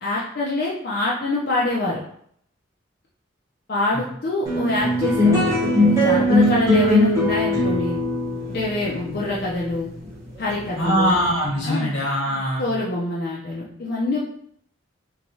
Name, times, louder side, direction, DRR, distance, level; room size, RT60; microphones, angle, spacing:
voice 1, 0.0-2.0 3.7-8.0 8.5-9.9 10.4-11.2 11.6-11.9 12.6-14.2, left 2 dB, 55° left, -5 dB, 0.4 m, -25 dB
sound 1, 4.5-11.1, left 1 dB, 15° right, 0.7 m, -20 dB
voice 2, 10.8-12.7, equal, 90° left, -4 dB, 1.1 m, -22 dB
2.9 x 2.2 x 2.6 m, 0.67 s
head